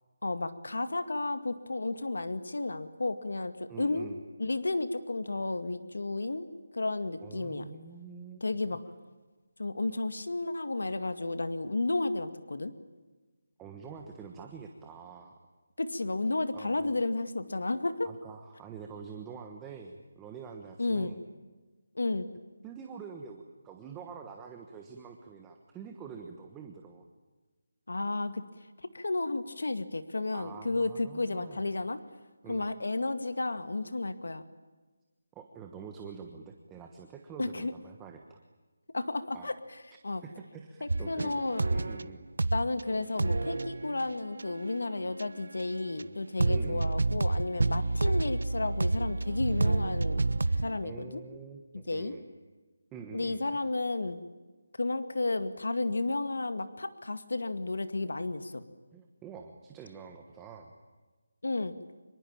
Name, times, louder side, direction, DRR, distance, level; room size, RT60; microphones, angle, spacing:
voice 1, 0.2-4.1 4.4-6.5 6.7-7.7 8.4-8.8 9.6-12.7 15.8-18.1 20.8-21.1 22.0-22.3 27.9-28.4 28.8-32.0 32.5-34.4 37.4-37.7 38.9-39.5 40.0-40.2 40.8-41.7 42.5-50.3 50.6-51.2 51.9-52.1 53.1-54.2 54.8-58.6 61.4-61.7, left 2 dB, 90° left, 10 dB, 2.1 m, -32 dB
voice 2, 3.7-4.2 7.2-8.4 13.6-15.3 16.5-16.9 18.0-21.2 22.6-27.1 30.3-31.6 32.4-32.6 35.3-38.4 39.3-39.5 40.2-41.3 41.7-42.3 45.9-46.1 46.5-46.9 50.8-52.2 52.9-53.6 58.9-60.7, right 6 dB, 10° right, 3 dB, 1.2 m, -46 dB
sound 1, 40.9-42.1 42.4-42.8 43.2-45.6 46.0-46.1 46.4-50.8, right 2 dB, 75° right, 1.2 m, -29 dB
26.0 x 23.5 x 8.9 m, 1.3 s
figure-of-eight pair, 175°, 0 cm